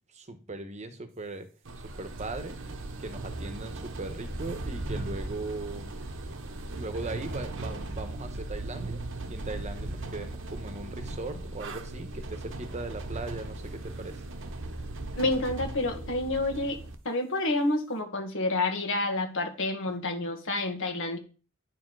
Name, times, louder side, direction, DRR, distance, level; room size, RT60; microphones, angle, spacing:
voice 1, 0.1-1.5 2.0-2.6 3.0-5.9 6.7-14.2, right 2 dB, 30° right, 8 dB, 1.1 m, -39 dB
sound 1, 1.7-17.0, right 2 dB, 60° right, 1.0 m, -38 dB
voice 2, 15.2-16.8 17.1-21.2, left 2 dB, 60° left, 4 dB, 1.8 m, -29 dB
10.0 x 4.4 x 4.7 m, 0.36 s
head